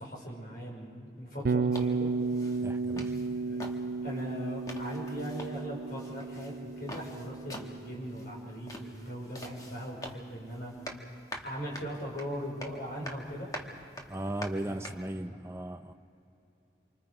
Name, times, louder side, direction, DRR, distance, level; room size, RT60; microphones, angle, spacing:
voice 1, 0.0-2.1 3.3-10.7 11.4-13.5 14.7-14.9 15.3-15.4, equal, 55° left, 5.6 m, -40 dB
Bass guitar, 1.4-9.5, right 4 dB, 60° right, 0.4 m, -34 dB
sound 1, 1.7-15.1, left 1 dB, 20° left, 1.4 m, -46 dB
voice 2, 2.6-3.1 14.1-15.9, right 1 dB, 15° right, 0.6 m, -37 dB
27.0 x 25.0 x 4.9 m
head